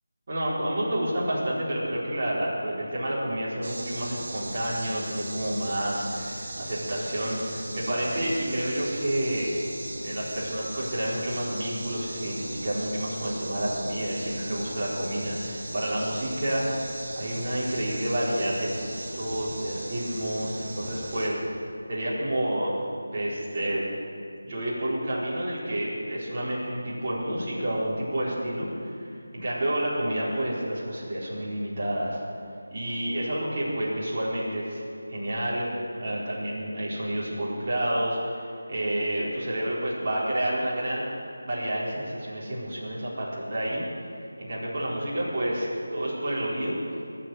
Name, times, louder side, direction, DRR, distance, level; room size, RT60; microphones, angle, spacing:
voice 1, 0.3-9.5 10.0-21.6 21.9-22.8 23.1-23.8 24.4-32.2 32.7-34.8 35.1-35.7 36.0-41.2 41.4-43.8 44.4-46.8, right 1 dB, 35° right, -8 dB, 4.4 m, -29 dB
sound 1, 3.6-21.3, right 1 dB, 50° right, 4.8 m, -38 dB
19.5 x 8.0 x 8.0 m, 2.4 s
figure-of-eight pair, 165°, 0 cm